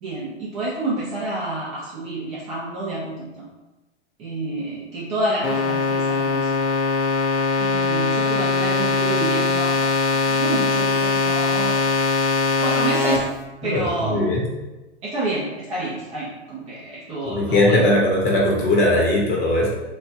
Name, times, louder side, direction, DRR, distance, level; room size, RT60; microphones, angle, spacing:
voice 1, 0.0-3.5 4.2-6.5 7.6-9.8 10.2-11.8 12.6-13.3 13.6-14.3 15.0-17.9, right 2 dB, 20° right, -7 dB, 0.5 m, -28 dB
sound 1, 5.4-13.2, left 4 dB, 85° left, 0.7 m, -21 dB
voice 2, 13.6-14.4 17.3-19.7, left 1 dB, 25° left, -3 dB, 0.8 m, -19 dB
3.1 x 2.2 x 3.3 m, 1.1 s
figure-of-eight pair, 110°, 35 cm